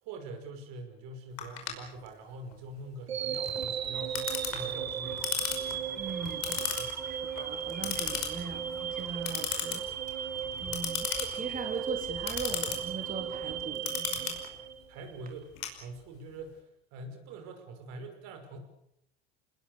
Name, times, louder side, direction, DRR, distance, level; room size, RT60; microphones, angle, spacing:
voice 1, 0.0-5.3 6.8-7.0 10.6-10.8 14.9-16.6 16.9-18.6, right 2 dB, 60° right, 6 dB, 5.8 m, -44 dB
Clock, 1.4-16.3, left 10 dB, 60° left, 5.4 m, -37 dB
sound 1, 3.1-15.2, right 8 dB, 90° right, 1.4 m, -36 dB
sound 2, 3.9-13.8, equal, ahead, 7.7 m, -51 dB
voice 2, 6.0-6.6 7.0-10.3 10.6-14.4, right 5 dB, 25° right, 3 dB, 3.4 m, -40 dB
28.5 x 20.5 x 6.8 m, 0.77 s
hypercardioid pair, 75°, 31 cm